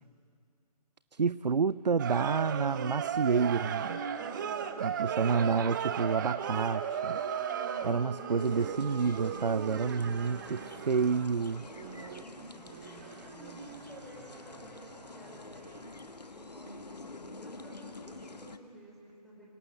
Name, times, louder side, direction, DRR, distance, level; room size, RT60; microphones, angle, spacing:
voice 1, 1.1-4.0 4.8-7.2 7.8-10.6 10.9-11.7, right 5 dB, 80° right, 17 dB, 0.5 m, -29 dB
sound 1, 2.0-15.4 15.7-15.8, right 8 dB, 30° right, 0.9 m, -36 dB
voice 2, 4.2-5.4 7.5-9.0 10.0-11.1 11.9-15.9 16.3-19.5, right 1 dB, ahead, -6 dB, 4.9 m, -51 dB
sound 2, 8.4-18.6, left 3 dB, 75° left, 1.3 m, -48 dB
25.0 x 17.5 x 7.8 m, 2.4 s
figure-of-eight pair, 140°, 21 cm